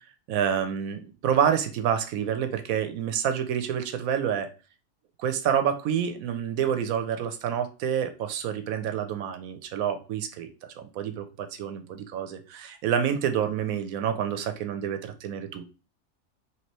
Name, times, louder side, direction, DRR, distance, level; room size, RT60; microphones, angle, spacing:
voice 1, 0.3-4.5 5.2-15.7, right 8 dB, 85° right, 8 dB, 1.1 m, -28 dB
4.5 x 2.8 x 3.0 m, 0.34 s
omnidirectional pair, 1.5 m